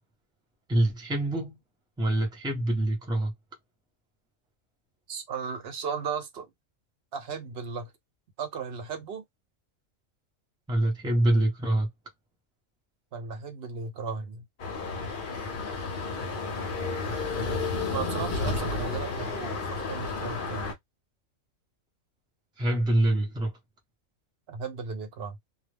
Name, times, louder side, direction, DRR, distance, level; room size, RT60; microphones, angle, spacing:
voice 1, 0.7-1.6 2.0-3.3 10.7-11.9 22.6-23.5, right 1 dB, 5° right, 0.7 m, -25 dB
voice 2, 5.1-6.5 7.1-7.9 8.4-9.2 13.1-14.4 15.4-15.5 17.9-20.7 24.5-25.4, right 5 dB, 55° right, 0.8 m, -36 dB
sound 1, 14.6-20.7, left 3 dB, 50° left, 0.7 m, -31 dB
2.3 x 2.0 x 3.3 m
omnidirectional pair, 1.4 m